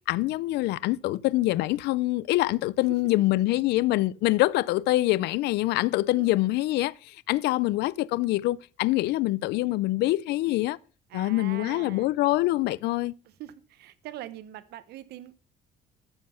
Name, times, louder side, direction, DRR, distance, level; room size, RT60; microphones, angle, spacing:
voice 1, 0.1-10.8 11.1-13.1, left 18 dB, 80° left, 0.5 m, -25 dB
voice 2, 11.1-12.2 13.2-15.3, right 13 dB, 75° right, 1.0 m, -43 dB
12.5 x 7.6 x 5.6 m
cardioid pair, 110°, 17 cm